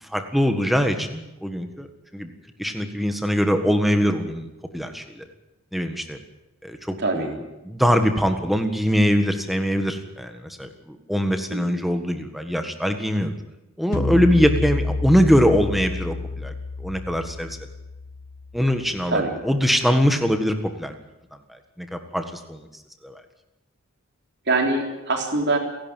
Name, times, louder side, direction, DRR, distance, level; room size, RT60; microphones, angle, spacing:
voice 1, 0.0-1.9 2.1-2.3 2.6-4.5 4.7-5.3 5.7-6.2 6.6-13.3 13.8-17.5 18.5-20.9 21.5-22.6 23.0-23.2, equal, ahead, 6 dB, 1.6 m, -22 dB
voice 2, 7.0-7.3 11.5-11.8 19.1-19.3 24.5-25.6, right 2 dB, 50° right, 2 dB, 3.9 m, -23 dB
sound 1, 13.9-19.3, left 3 dB, 45° left, 0.7 m, -29 dB
28.5 x 11.5 x 9.1 m, 0.99 s
head